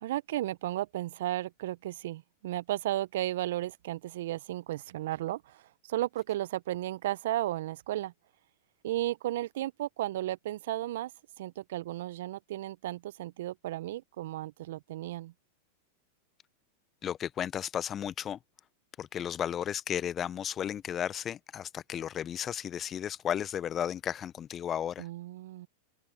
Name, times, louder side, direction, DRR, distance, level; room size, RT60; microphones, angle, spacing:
voice 1, 0.0-8.1 8.8-11.1 11.4-15.3 25.0-25.7, right 14 dB, 65° right, 0.9 m, -34 dB
voice 2, 17.0-18.4 19.0-25.1, left 9 dB, 30° left, 0.9 m, -34 dB
hypercardioid pair, 95°, 0 cm